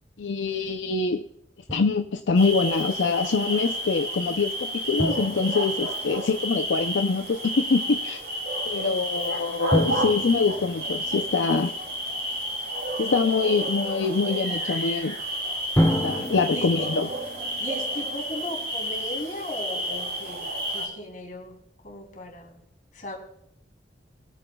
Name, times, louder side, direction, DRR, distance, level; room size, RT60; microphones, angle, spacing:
voice 1, 0.2-1.2 1.7-8.2 8.7-11.7 13.0-15.2 16.0-17.1, left 4 dB, 80° left, 6 dB, 0.6 m, -24 dB
Drum, 1.7-2.4 5.0-6.8 9.7-12.2 15.7-18.9, equal, 15° left, 2.0 m, -30 dB
sound 1, 2.4-20.9, equal, 70° right, 4.0 m, -31 dB
voice 2, 17.6-22.6 22.9-23.1, left 1 dB, 45° left, 1 dB, 3.2 m, -37 dB
21.0 x 9.2 x 2.3 m, 0.71 s
head